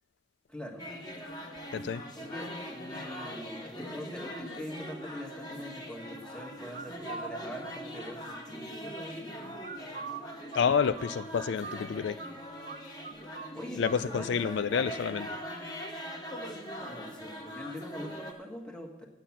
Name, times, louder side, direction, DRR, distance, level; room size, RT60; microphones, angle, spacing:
voice 1, 0.5-0.8 2.1-9.3 13.2-14.9 16.7-19.1, equal, 5° left, 1 dB, 1.5 m, -43 dB
sound 1, 0.8-18.3, equal, 20° left, 1.4 m, -42 dB
sound 2, 6.7-7.3 9.6-12.3 12.6-12.8 13.0-14.0, right 5 dB, 45° right, 0.7 m, -42 dB
voice 2, 10.5-12.2 13.8-15.3, left 6 dB, 70° left, 13 dB, 0.4 m, -29 dB
9.1 x 8.9 x 7.2 m, 1.0 s
head